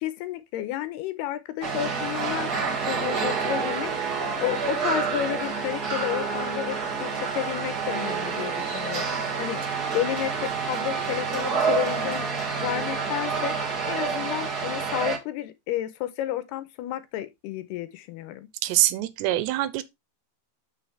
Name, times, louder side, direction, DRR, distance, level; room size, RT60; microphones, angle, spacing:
voice 1, 0.0-2.5 2.9-3.9 4.4-9.6 9.9-12.3 12.6-13.5 13.9-18.5, left 12 dB, 80° left, 2.8 m, -31 dB
sound 1, 1.6-15.2, right 5 dB, 45° right, 1.3 m, -28 dB
voice 2, 18.6-19.8, right 15 dB, 85° right, 3.0 m, -24 dB
9.9 x 6.4 x 3.3 m
omnidirectional pair, 4.9 m